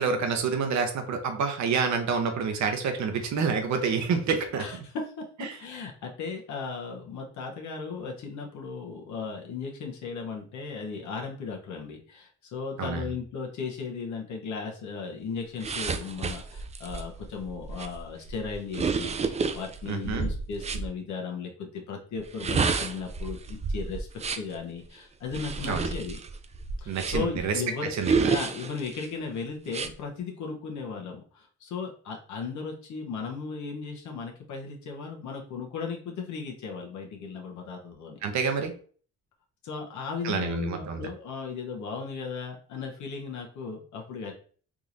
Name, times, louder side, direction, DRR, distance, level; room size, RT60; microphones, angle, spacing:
voice 1, 0.0-4.6 12.8-13.0 19.9-20.3 25.6-25.9 26.9-27.6 27.9-28.1 38.2-38.7 40.2-41.0, right 5 dB, 65° right, 5 dB, 0.8 m, -28 dB
voice 2, 4.6-26.2 26.8-27.9 28.3-38.2 39.6-44.3, left 5 dB, 70° left, 1 dB, 0.9 m, -36 dB
sound 1, 15.6-20.9 22.2-24.6 25.3-27.4 28.0-29.1 29.7-29.9, right 5 dB, 25° right, 0.3 m, -30 dB
3.6 x 2.9 x 2.5 m, 0.43 s
cardioid pair, 90°, 30 cm